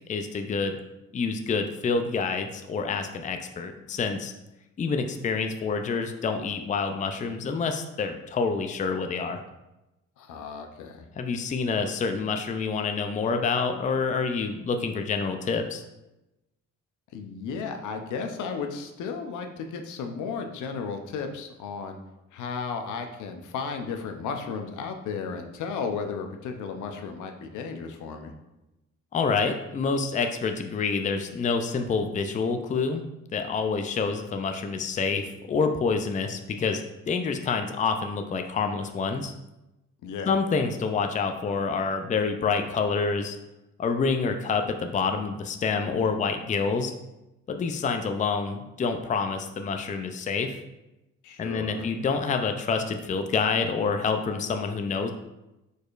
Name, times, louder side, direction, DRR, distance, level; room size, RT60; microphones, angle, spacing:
voice 1, 0.1-0.8 1.1-4.3 4.8-9.4 11.2-15.8 29.1-33.0 33.3-36.8 37.1-39.3 40.3-43.4 43.8-46.9 47.5-50.6 51.4-55.1, left 5 dB, 25° left, 6 dB, 0.4 m, -27 dB
voice 2, 10.2-11.1 17.1-22.0 22.3-28.3 40.0-40.3 51.2-51.9, left 5 dB, 80° left, 5 dB, 0.7 m, -34 dB
4.9 x 4.3 x 2.5 m, 0.96 s
cardioid pair, 90°, 30 cm